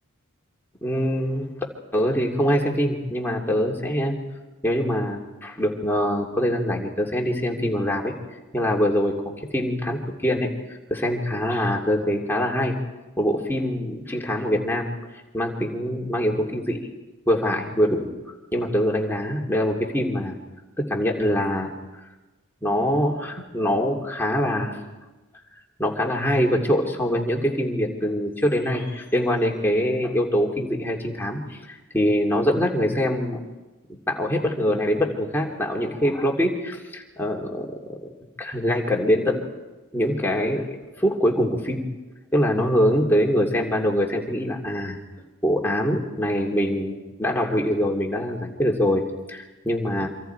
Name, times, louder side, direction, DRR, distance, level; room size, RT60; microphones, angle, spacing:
voice 1, 0.8-1.5 1.9-4.2 4.6-8.1 8.5-9.2 9.5-10.5 10.9-12.8 13.2-14.9 15.3-16.8 17.3-18.1 18.5-20.4 20.8-21.7 22.6-24.8 25.8-33.5 33.9-38.1 38.4-39.4 39.9-40.6 40.9-41.8 42.3-45.0 45.4-50.1, equal, 10° left, -1 dB, 2.8 m, -24 dB
27.0 x 25.5 x 4.7 m, 1.2 s
head